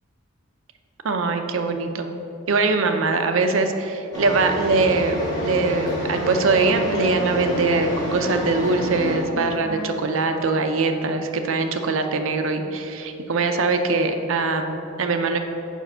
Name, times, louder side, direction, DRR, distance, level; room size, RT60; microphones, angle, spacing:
voice 1, 1.0-2.1 2.5-5.2 5.4-15.4, right 3 dB, 70° right, 6 dB, 0.6 m, -22 dB
sound 1, 4.1-9.2, equal, 20° left, 1.9 m, -28 dB
Wind instrument woodwind instrument, 5.8-11.1, left 1 dB, 75° left, 1.3 m, -36 dB
7.3 x 5.2 x 5.5 m, 2.8 s
head